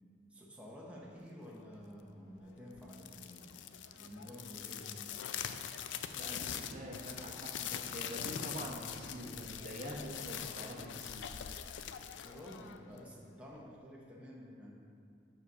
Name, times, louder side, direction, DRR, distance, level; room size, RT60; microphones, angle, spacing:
voice 1, 0.3-3.7 3.9-5.0 12.2-14.7, equal, 5° right, -4 dB, 0.8 m, -51 dB
sound 1, 2.8-13.1, left 9 dB, 75° left, 0.3 m, -43 dB
voice 2, 6.1-11.3, equal, 45° right, -1 dB, 0.9 m, -45 dB
6.1 x 5.0 x 5.5 m, 2.3 s
head